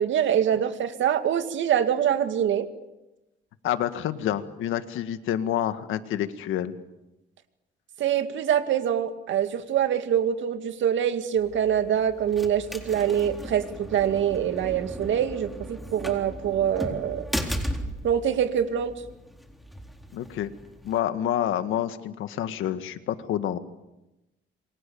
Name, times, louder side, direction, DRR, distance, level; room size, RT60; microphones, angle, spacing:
voice 1, 0.0-2.7 8.0-17.2 18.0-18.9, right 9 dB, 75° right, 8 dB, 2.3 m, -24 dB
voice 2, 3.6-6.8 20.1-20.5 20.8-23.6, left 11 dB, 85° left, 10 dB, 1.8 m, -28 dB
sound 1, 11.4-21.0, equal, ahead, 4.0 m, -37 dB
28.5 x 24.5 x 7.1 m, 0.97 s
cardioid pair, 90°, 20 cm